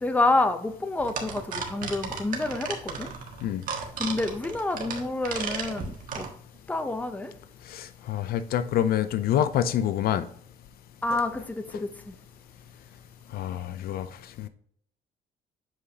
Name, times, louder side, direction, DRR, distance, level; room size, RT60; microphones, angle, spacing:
voice 1, 0.0-3.1 4.0-6.3 6.7-7.3 11.0-12.2, left 2 dB, 10° left, 9 dB, 0.6 m, -28 dB
sound 1, 1.0-6.3, right 5 dB, 55° right, 1.4 m, -34 dB
voice 2, 7.7-10.3 11.1-11.2 13.3-14.1 14.4-14.5, left 10 dB, 65° left, 13 dB, 0.5 m, -27 dB
7.3 x 4.9 x 2.8 m, 0.62 s
cardioid pair, 110°, 17 cm